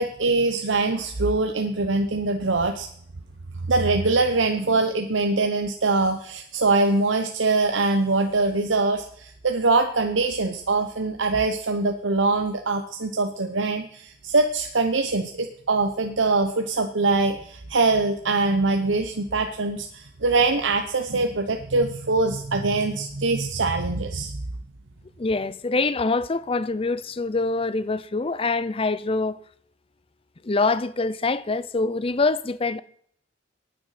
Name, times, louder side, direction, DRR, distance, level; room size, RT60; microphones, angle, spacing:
voice 1, 0.0-2.9 3.6-24.4, right 3 dB, 85° right, 1.0 m, -23 dB
voice 2, 25.2-29.4 30.4-32.8, left 3 dB, 30° left, 0.6 m, -25 dB
20.5 x 9.6 x 5.8 m
head